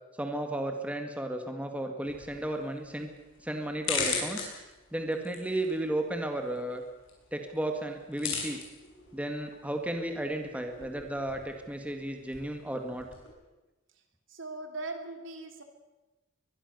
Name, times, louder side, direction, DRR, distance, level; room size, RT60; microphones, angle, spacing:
voice 1, 0.1-3.1 3.4-4.4 4.9-6.8 7.3-8.6 9.1-13.1, right 1 dB, 5° right, 4 dB, 2.0 m, -34 dB
sound 1, 2.0-13.3, left 5 dB, 70° left, 6.9 m, -40 dB
voice 2, 14.3-15.6, right 2 dB, 65° right, 6 dB, 3.2 m, -39 dB
23.0 x 21.5 x 6.9 m, 1.1 s
head